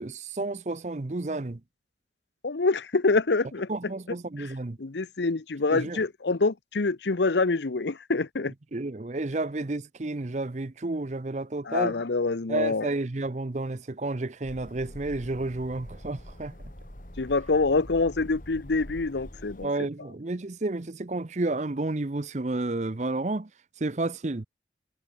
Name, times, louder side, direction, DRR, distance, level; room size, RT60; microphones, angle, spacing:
voice 1, 0.0-1.6 3.7-4.8 5.7-6.0 8.7-12.0 12.5-16.5 19.6-23.5 23.8-24.5, right 2 dB, 40° right, 0.7 m, -31 dB
voice 2, 2.4-3.7 4.4-4.5 4.8-8.5 11.7-12.9 17.2-19.7, left 3 dB, 75° left, 0.8 m, -26 dB
sound 1, 14.4-19.7, equal, 45° left, 4.1 m, -44 dB
head